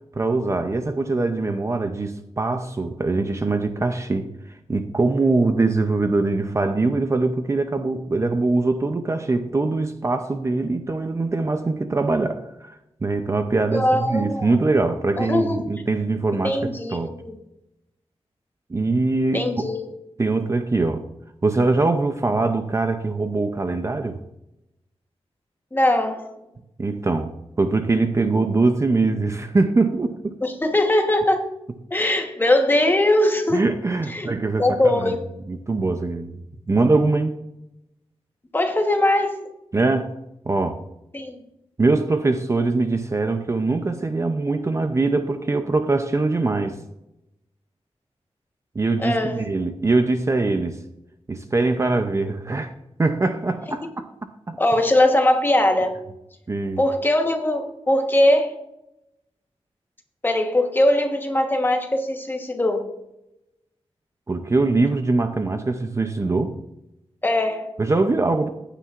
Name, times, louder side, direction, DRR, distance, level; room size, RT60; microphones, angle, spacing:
voice 1, 0.2-4.3 4.7-12.7 13.0-17.1 18.7-19.5 20.2-21.0 21.4-24.2 26.8-30.3 33.5-35.2 35.5-36.3 36.7-37.4 39.7-40.1 40.5-40.8 41.8-46.8 48.8-50.8 51.3-52.7 53.0-54.1 54.5-54.6 56.5-56.8 64.3-66.5 67.8-68.5, right 3 dB, 25° right, 7 dB, 0.5 m, -22 dB
voice 2, 13.7-14.6 15.2-15.6 16.4-17.3 19.3-19.9 25.7-26.3 30.4-31.5 31.9-33.6 34.1-34.3 34.6-35.2 38.5-39.4 41.1-41.4 49.0-49.4 54.6-55.9 56.8-58.6 60.2-62.9 67.2-67.7, left 1 dB, 20° left, 4 dB, 1.2 m, -21 dB
15.0 x 9.9 x 2.5 m, 0.87 s
wide cardioid pair, 170°, 11 cm